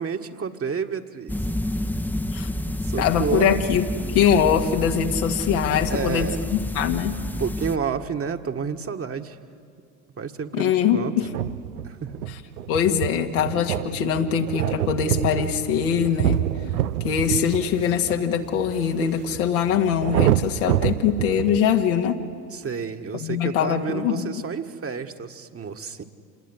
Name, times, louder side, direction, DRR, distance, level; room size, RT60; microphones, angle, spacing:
voice 1, 0.0-1.4 2.8-3.6 5.7-6.5 7.4-9.4 10.2-11.1 11.8-12.2 22.5-26.0, right 6 dB, 30° right, 6 dB, 1.7 m, -30 dB
sound 1, 1.3-7.8, left 1 dB, 5° left, 1.0 m, -29 dB
voice 2, 3.0-7.2 10.5-11.2 12.7-16.4 17.0-22.2 23.2-24.4, left 8 dB, 75° left, 3 dB, 2.0 m, -23 dB
sound 2, 11.2-21.6, right 12 dB, 85° right, 0.7 m, -27 dB
27.0 x 20.5 x 9.9 m, 2.3 s
hypercardioid pair, 65°, 43 cm